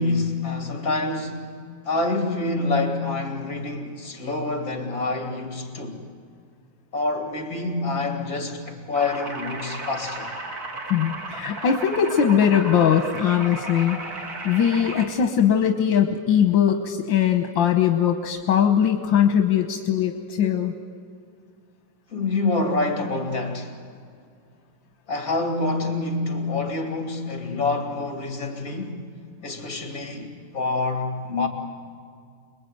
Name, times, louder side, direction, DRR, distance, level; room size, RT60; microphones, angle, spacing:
voice 1, 0.0-1.6 1.9-6.0 6.9-10.3 22.1-23.8 25.1-29.0 29.4-31.5, left 3 dB, 50° left, 3.5 m, -27 dB
sound 1, 8.9-15.1, right 2 dB, 50° right, 3.1 m, -34 dB
voice 2, 10.9-14.0 14.4-20.7, left 8 dB, 80° left, 1.9 m, -20 dB
28.0 x 21.5 x 9.4 m
omnidirectional pair, 2.0 m